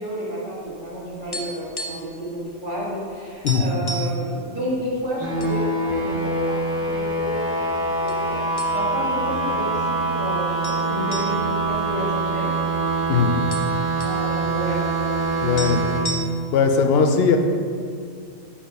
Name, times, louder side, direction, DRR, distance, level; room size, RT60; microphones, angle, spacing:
voice 1, 0.0-12.5 14.0-14.9, right 1 dB, 45° right, -7 dB, 1.8 m, -31 dB
sound 1, 0.8-2.2 2.5-2.7 3.0-3.1 3.5-4.2 4.9-5.6 5.9-6.1 6.8-7.4 8.1-8.2 8.6-9.1 9.5-9.6 10.6-12.7 13.0-13.1 13.3-14.2 15.2-15.3 15.6-16.6, right 1 dB, 40° left, 0.3 m, -33 dB
sound 2, 5.2-16.0, right 2 dB, 10° right, 1.0 m, -24 dB
voice 2, 15.4-15.8 16.5-17.4, left 6 dB, 65° left, 5 dB, 0.8 m, -18 dB
7.0 x 2.8 x 5.4 m, 2.2 s
omnidirectional pair, 1.1 m